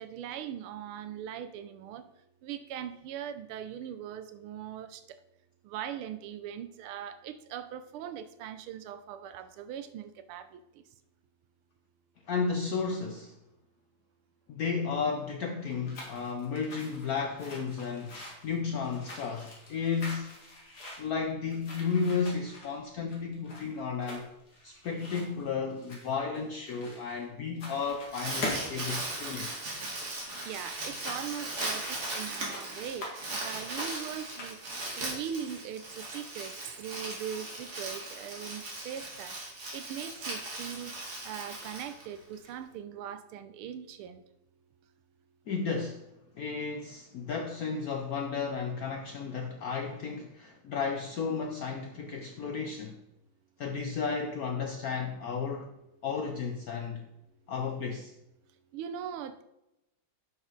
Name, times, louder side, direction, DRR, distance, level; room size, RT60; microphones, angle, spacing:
voice 1, 0.0-2.1 2.4-5.2 5.6-10.8 30.4-34.6 35.0-39.4 39.7-40.9 41.2-44.2 58.7-59.4, right 9 dB, 85° right, 1.5 m, -40 dB
voice 2, 12.3-13.3 14.5-20.4 21.0-24.3 24.6-29.5 45.5-46.0 46.3-53.0 53.6-55.7 56.0-57.0 57.5-58.1, left 5 dB, 70° left, 0.8 m, -33 dB
sound 1, 15.7-27.2 27.5-28.1 28.4-33.2 33.5-34.7, left 1 dB, 50° left, 2.5 m, -43 dB
Crumpling crinkling, 27.8-42.5, right 2 dB, 50° right, 2.5 m, -38 dB
9.7 x 6.2 x 3.9 m
omnidirectional pair, 2.3 m